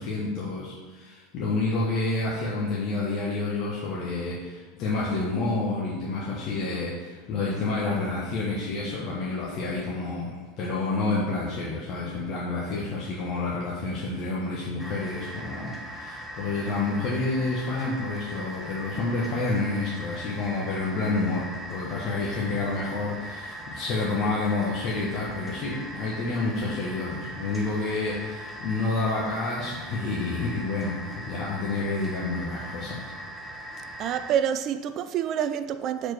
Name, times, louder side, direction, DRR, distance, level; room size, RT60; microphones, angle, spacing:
voice 1, 0.0-33.1, left 3 dB, 50° left, 1.3 m, -29 dB
sound 1, 14.8-34.3, equal, 5° left, 1.3 m, -40 dB
voice 2, 34.0-36.1, right 9 dB, 45° right, 0.4 m, -27 dB
5.1 x 4.5 x 6.1 m
hypercardioid pair, 95°, 0 cm